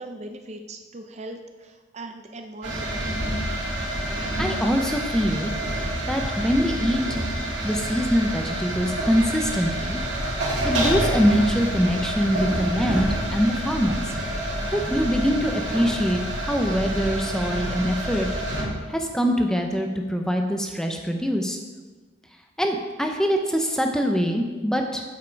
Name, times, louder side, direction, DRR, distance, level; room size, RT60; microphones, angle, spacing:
voice 1, 0.0-3.1, right 2 dB, 35° right, 5 dB, 0.5 m, -39 dB
sound 1, 2.6-18.6, right 1 dB, 65° right, 2.5 m, -28 dB
voice 2, 4.4-5.5 6.1-7.2 7.6-10.0 10.6-14.0 14.7-18.3 18.9-21.6 22.6-25.0, equal, 5° left, 3 dB, 0.7 m, -23 dB
8.4 x 7.4 x 4.6 m, 1.3 s
head